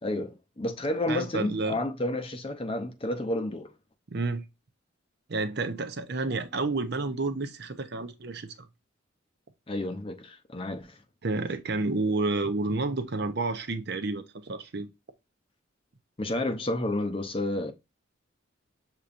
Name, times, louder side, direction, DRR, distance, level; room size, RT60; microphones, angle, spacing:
voice 1, 0.0-3.7 9.7-11.0 16.2-17.7, left 1 dB, 30° left, 0.6 m, -31 dB
voice 2, 1.1-1.8 4.1-4.4 5.3-8.5 11.2-14.9, right 3 dB, 55° right, 0.7 m, -30 dB
6.7 x 2.9 x 2.5 m
head